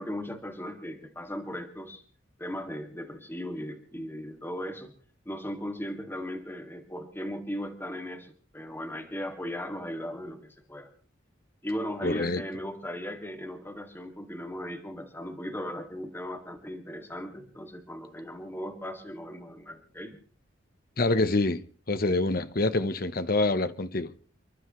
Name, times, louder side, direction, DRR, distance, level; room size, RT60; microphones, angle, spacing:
voice 1, 0.0-2.0 2.4-4.9 5.3-10.9 11.6-20.2, equal, 10° left, 2.2 m, -37 dB
voice 2, 12.0-12.4 21.0-21.6 21.9-24.1, left 2 dB, 50° left, 1.0 m, -26 dB
30.0 x 12.0 x 3.1 m
head